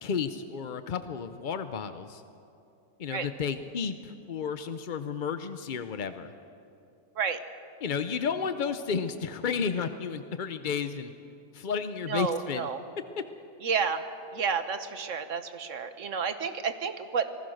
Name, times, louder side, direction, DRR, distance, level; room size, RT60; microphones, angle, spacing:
voice 1, 0.0-2.2 3.0-6.3 7.8-11.1 11.5-12.7, left 6 dB, 50° left, 10 dB, 0.5 m, -32 dB
voice 2, 12.1-12.8 13.6-14.0 14.3-17.3, right 6 dB, 55° right, 10 dB, 1.4 m, -30 dB
26.5 x 19.5 x 6.4 m, 2.6 s
omnidirectional pair, 1.7 m